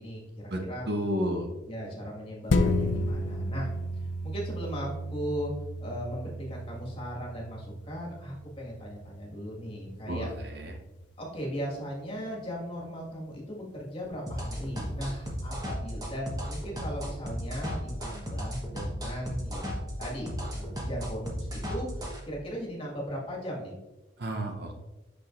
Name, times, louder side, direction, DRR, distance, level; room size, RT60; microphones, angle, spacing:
voice 1, 0.0-0.8 1.7-3.7 4.2-5.5 5.8-10.3 11.2-23.7, equal, 30° left, -3 dB, 1.8 m, -37 dB
voice 2, 0.5-1.5 10.1-10.7 24.2-24.7, equal, 55° right, 3 dB, 0.8 m, -31 dB
sound 1, 2.5-11.3 11.8-11.9, left 1 dB, 65° left, 0.5 m, -33 dB
sound 2, 14.3-22.2, equal, 20° right, 1.1 m, -35 dB
8.4 x 6.2 x 2.5 m, 1.1 s
head